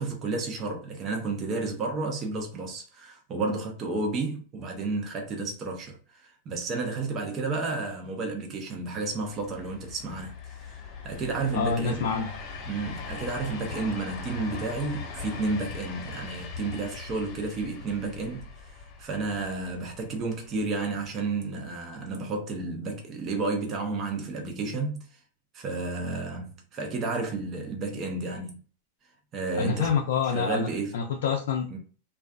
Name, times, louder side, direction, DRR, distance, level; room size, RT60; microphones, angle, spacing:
voice 1, 0.0-12.0 12.7-25.2 25.5-28.6 29.3-29.9 30.3-31.0 31.7-31.8, right 3 dB, 35° right, 0.6 m, -32 dB
sound 1, 9.1-21.1, left 5 dB, 40° left, 0.9 m, -41 dB
voice 2, 11.5-12.3 29.5-30.7 30.9-31.8, left 6 dB, 75° left, 0.4 m, -27 dB
2.4 x 2.3 x 2.3 m
hypercardioid pair, 120°, 0 cm